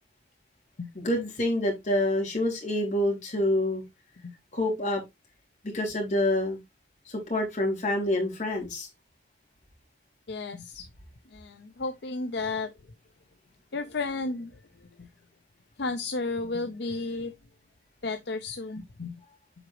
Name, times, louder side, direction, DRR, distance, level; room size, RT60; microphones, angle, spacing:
voice 1, 1.0-3.8 4.5-5.0 5.7-6.6 7.1-8.9, left 1 dB, 45° left, 3.5 m, -27 dB
voice 2, 10.3-10.9 11.3-12.7 13.7-14.5 15.0-15.1 15.8-17.3 18.0-19.1, left 3 dB, 70° left, 0.7 m, -33 dB
7.9 x 4.9 x 3.0 m
head